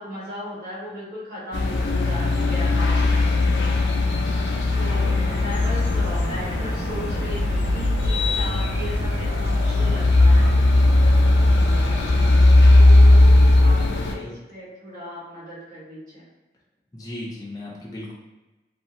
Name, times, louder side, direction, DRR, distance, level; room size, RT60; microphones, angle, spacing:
voice 1, 0.0-3.7 4.8-10.5 13.6-14.2 14.5-16.3, equal, 45° right, -9 dB, 1.3 m, -36 dB
sound 1, 1.5-14.1, left 2 dB, 80° left, 0.4 m, -18 dB
sound 2, 4.8-12.5, right 1 dB, 70° right, 0.5 m, -34 dB
voice 2, 13.9-14.3 16.9-18.1, left 1 dB, 20° left, -4 dB, 0.5 m, -36 dB
2.6 x 2.4 x 3.0 m, 1.1 s
head